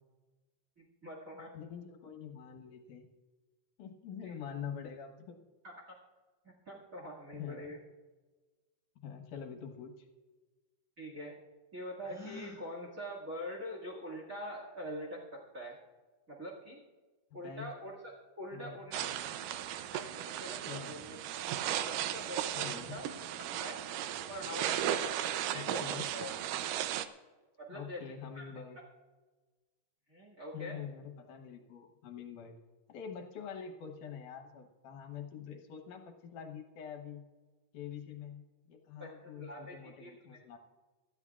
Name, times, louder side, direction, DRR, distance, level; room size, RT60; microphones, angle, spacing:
voice 1, 0.8-1.5 4.2-4.3 5.6-5.7 6.7-7.8 11.0-11.3 11.7-15.8 16.3-16.8 17.3-19.3 19.9-21.5 21.8-23.0 23.4-23.8 24.3-25.2 25.5-26.3 27.6-28.0 28.3-28.5 30.1-30.8 39.0-40.4, equal, 30° right, -2 dB, 1.8 m, -44 dB
voice 2, 1.5-3.1 3.8-5.5 7.3-7.7 9.0-10.1 17.4-17.7 18.5-19.1 20.7-21.0 22.5-23.0 25.5-26.0 27.7-28.8 30.5-32.6 32.9-37.2 37.7-40.6, left 7 dB, 75° left, 4 dB, 2.5 m, -45 dB
Gasp, 12.0-12.6, left 2 dB, 10° left, 5.1 m, -47 dB
sound 1, 18.9-27.1, right 11 dB, 80° right, 2.2 m, -36 dB
25.0 x 12.5 x 2.4 m, 1.3 s
omnidirectional pair, 3.8 m